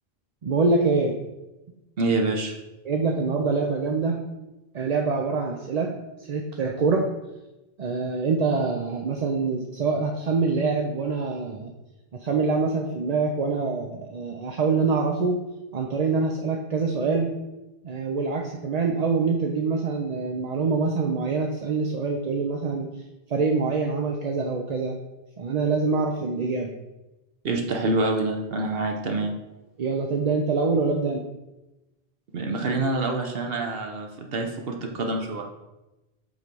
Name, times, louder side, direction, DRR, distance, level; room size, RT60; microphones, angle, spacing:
voice 1, 0.4-1.1 2.8-4.2 4.7-5.9 6.3-7.0 7.8-11.7 12.2-15.4 15.7-17.3 17.8-22.9 23.3-25.0 25.4-26.7 29.8-31.2, right 4 dB, 45° right, 1 dB, 0.6 m, -25 dB
voice 2, 2.0-2.5 27.4-29.3 32.3-35.4, right 2 dB, 65° right, 3 dB, 1.0 m, -26 dB
7.4 x 3.2 x 5.2 m, 1.0 s
omnidirectional pair, 1.1 m